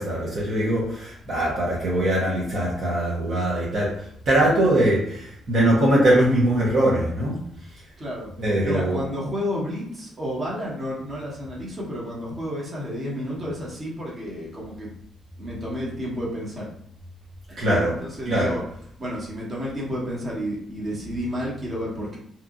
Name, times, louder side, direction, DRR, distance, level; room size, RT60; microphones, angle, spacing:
voice 1, 0.0-3.9 4.3-7.4 8.4-9.0 17.6-18.0 18.3-18.6, right 1 dB, 60° right, -6 dB, 0.8 m, -21 dB
voice 2, 8.0-8.3 8.6-14.9 15.4-16.6 17.5-18.6 19.0-22.2, equal, 35° right, -5 dB, 1.1 m, -31 dB
2.8 x 2.3 x 2.5 m, 0.69 s
cardioid pair, 90°, 0 cm